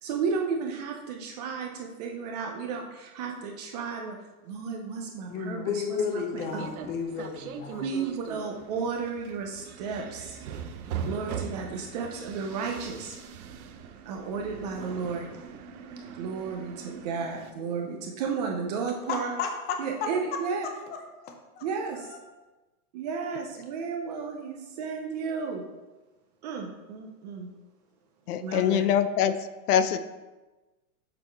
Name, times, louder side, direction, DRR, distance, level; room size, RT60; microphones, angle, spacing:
voice 1, 0.0-4.2 4.4-6.2 6.5-6.7 7.8-10.4 11.0-13.2 14.1-15.3 16.1-19.3 19.8-20.7 21.6-22.1 22.9-25.6 26.4-27.5 28.4-28.8, right 5 dB, 30° right, 2 dB, 0.4 m, -33 dB
voice 2, 5.3-7.9 19.1-20.4 21.2-21.6 22.0-22.2, left 6 dB, 20° left, 4 dB, 0.6 m, -33 dB
sound 1, 6.4-17.5, right 7 dB, 70° right, 0.7 m, -40 dB
voice 3, 28.3-29.3 29.7-30.0, left 9 dB, 75° left, 12 dB, 0.6 m, -23 dB
6.7 x 3.6 x 4.4 m, 1.2 s
supercardioid pair, 145°, 45 cm